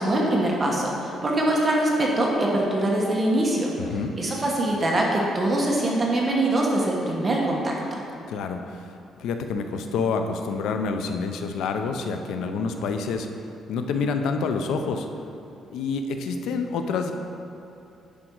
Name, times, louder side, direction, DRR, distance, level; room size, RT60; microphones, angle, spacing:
voice 1, 0.0-3.7 4.2-8.0, right 1 dB, 25° right, -2 dB, 1.2 m, -23 dB
voice 2, 3.8-4.1 8.3-8.8 9.2-13.3 13.7-15.1 15.7-17.1, left 4 dB, 85° left, 6 dB, 0.6 m, -27 dB
10.0 x 5.1 x 4.6 m, 2.8 s
cardioid pair, 120°, 0 cm